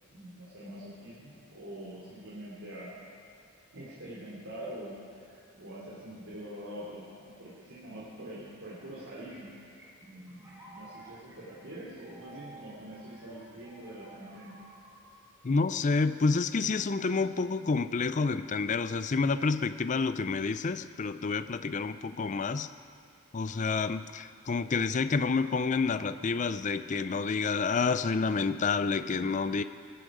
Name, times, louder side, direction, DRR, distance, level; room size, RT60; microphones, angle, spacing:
voice 1, 0.1-2.9 3.7-9.5 10.0-14.5, right 1 dB, 70° right, -8 dB, 3.0 m, -44 dB
sound 1, 8.7-16.3, right 2 dB, 15° right, 3.3 m, -54 dB
voice 2, 15.4-22.7 23.3-29.6, left 4 dB, 35° left, 12 dB, 0.4 m, -29 dB
20.5 x 11.0 x 5.0 m, 2.5 s
head